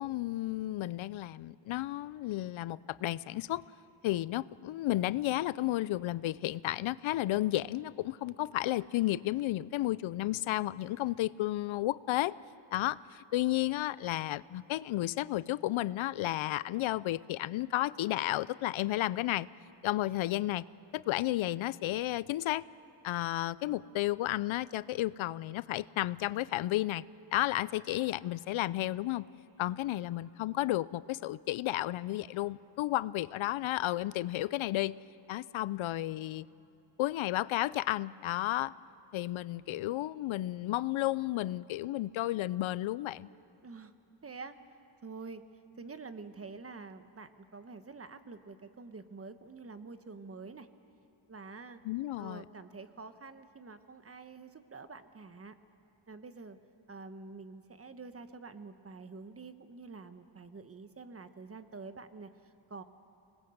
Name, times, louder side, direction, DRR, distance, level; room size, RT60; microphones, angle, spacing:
voice 1, 0.0-3.6 4.0-12.4 12.7-19.5 19.8-20.7 20.9-22.6 23.0-27.0 27.3-29.3 29.6-35.0 35.3-36.5 37.0-38.7 39.1-43.3 51.9-52.4, left 15 dB, 80° left, 19 dB, 0.6 m, -32 dB
voice 2, 29.6-30.1 39.6-39.9 43.6-43.9 44.2-44.6 45.0-45.4 45.7-50.7 51.3-51.8 52.2-55.5 56.1-56.6 56.9-62.8, right 4 dB, 30° right, 10 dB, 1.1 m, -47 dB
25.5 x 19.5 x 7.9 m, 2.9 s
cardioid pair, 110°, 47 cm